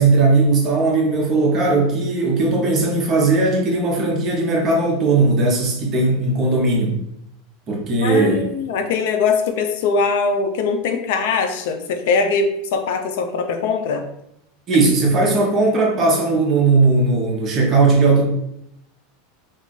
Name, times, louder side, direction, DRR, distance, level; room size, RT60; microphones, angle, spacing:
voice 1, 0.0-7.0 7.7-8.5 14.7-18.2, right 3 dB, 30° right, 0 dB, 0.7 m, -17 dB
voice 2, 8.0-14.0, left 4 dB, 65° left, 6 dB, 0.4 m, -21 dB
2.5 x 2.3 x 3.8 m, 0.77 s
supercardioid pair, 160°, 0 cm